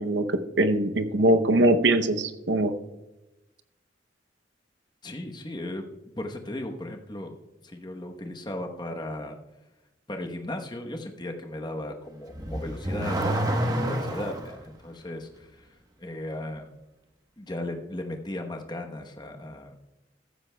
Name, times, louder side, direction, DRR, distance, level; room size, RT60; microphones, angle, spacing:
voice 1, 0.0-2.7, right 1 dB, 75° right, 8 dB, 0.7 m, -22 dB
voice 2, 5.0-5.8 6.2-7.3 7.6-9.4 10.1-15.5 16.0-16.7 17.4-19.8, left 1 dB, 25° left, 3 dB, 1.0 m, -36 dB
Car / Accelerating revving vroom, 12.3-14.5, right 1 dB, 20° right, 1.0 m, -27 dB
14.5 x 13.0 x 2.2 m, 0.99 s
head